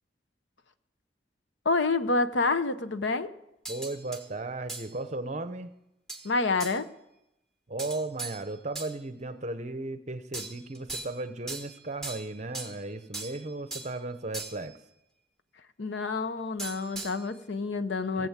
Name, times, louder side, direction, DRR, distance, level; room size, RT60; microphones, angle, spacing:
voice 1, 1.6-3.3 6.2-6.9 15.8-18.3, left 3 dB, 75° left, 11 dB, 0.8 m, -28 dB
sound 1, 3.7-4.3 4.7-4.9 6.1-6.3 6.6-6.8 7.8-9.0 10.3-11.2 11.5-12.8 13.1-13.9 14.3-14.7 16.6-17.3, right 3 dB, 5° left, 1.5 m, -39 dB
voice 2, 3.7-5.7 7.7-14.8 18.2-18.3, right 2 dB, 35° right, 11 dB, 0.8 m, -36 dB
17.5 x 7.8 x 7.3 m, 0.88 s
head